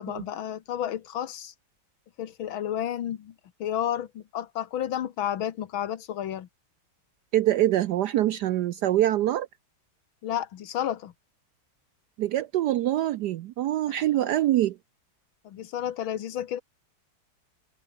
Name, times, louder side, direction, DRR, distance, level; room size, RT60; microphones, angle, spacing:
voice 1, 0.0-1.5 2.2-3.4 3.6-6.5 10.2-11.1 13.9-14.3 15.4-16.6, left 10 dB, 75° left, 1.9 m, -31 dB
voice 2, 7.3-9.5 12.2-14.8, right 13 dB, 75° right, 0.9 m, -24 dB
omnidirectional pair, 2.2 m